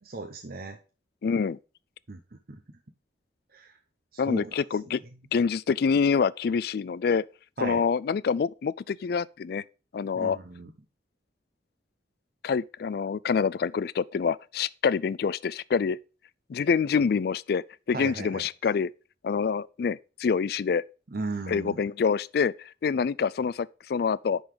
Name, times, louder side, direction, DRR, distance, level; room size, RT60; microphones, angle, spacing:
voice 1, 0.1-0.8 2.1-2.2 2.5-2.6 3.5-3.8 4.1-4.5 7.6-7.8 10.2-10.7 17.9-18.5 21.1-21.8, right 3 dB, 50° right, 0.8 m, -36 dB
voice 2, 1.2-1.6 4.2-5.0 5.3-7.2 7.6-9.6 9.9-10.4 12.4-16.0 16.5-18.9 19.2-20.8 21.5-24.4, left 6 dB, 55° left, 0.3 m, -26 dB
10.5 x 3.9 x 4.9 m
head